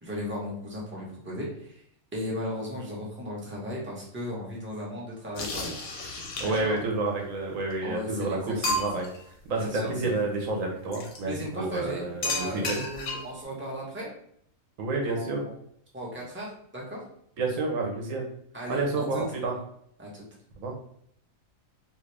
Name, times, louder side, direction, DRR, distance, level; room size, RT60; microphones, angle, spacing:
voice 1, 0.0-1.8 2.1-5.8 6.4-6.8 7.8-9.0 9.6-10.2 11.2-14.1 15.0-15.5 15.9-17.0 18.5-19.2 20.0-20.3, equal, 10° right, -4 dB, 0.7 m, -36 dB
sound 1, 5.3-6.8 7.7-7.8 8.2-8.3 8.6-9.2 10.9-11.2 12.2-13.4, left 2 dB, 85° left, 1.1 m, -32 dB
voice 2, 6.4-9.1 9.5-12.8 14.8-15.5 17.4-18.3 18.7-19.5 20.6-20.7, right 3 dB, 75° right, 0 dB, 1.1 m, -29 dB
2.8 x 2.5 x 3.2 m, 0.67 s
omnidirectional pair, 1.4 m